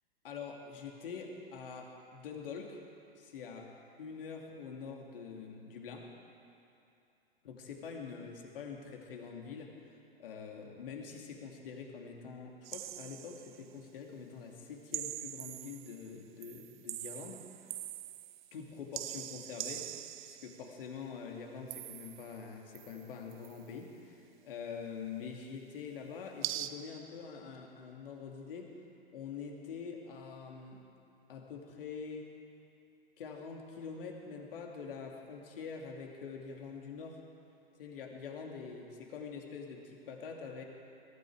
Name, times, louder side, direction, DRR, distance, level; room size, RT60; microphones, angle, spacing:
voice 1, 0.2-2.8 3.2-3.7 4.0-6.1 7.4-9.7 10.2-17.7 18.5-19.9 20.2-28.7 29.1-30.8 31.3-32.3 33.2-37.2 37.8-40.6, left 5 dB, 60° left, 1 dB, 2.7 m, -45 dB
sound 1, 12.6-13.6 14.9-16.1 16.4-18.6 18.9-20.7 21.7-22.4 22.7-23.6 26.4-26.7, right 13 dB, 50° right, 0.8 m, -43 dB
22.0 x 13.0 x 4.8 m, 2.7 s
figure-of-eight pair, 105°, 31 cm